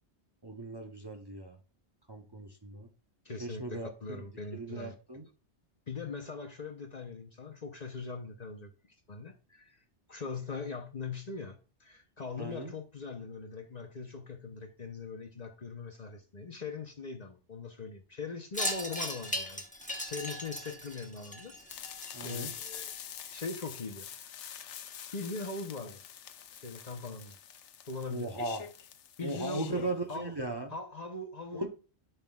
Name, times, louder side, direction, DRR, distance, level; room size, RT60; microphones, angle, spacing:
voice 1, 0.4-1.6 2.1-2.9 3.4-4.3 4.5-5.3 12.4-12.7 22.1-22.5 28.1-28.6 29.2-30.7 31.5-31.7, right 2 dB, 25° right, 0.7 m, -38 dB
voice 2, 3.2-5.2 5.9-8.7 9.1-9.8 10.1-19.7 20.0-21.5 22.2-22.9 23.3-24.1 24.6-24.7 25.1-26.0 26.6-27.4 27.9-28.3 29.2-30.3 30.7-31.7, left 4 dB, 40° left, 0.8 m, -41 dB
Wind chime, 18.5-23.2, left 1 dB, 5° left, 0.9 m, -38 dB
sound 1, 21.7-30.2, left 9 dB, 85° left, 1.0 m, -46 dB
11.0 x 5.8 x 2.3 m
omnidirectional pair, 1.2 m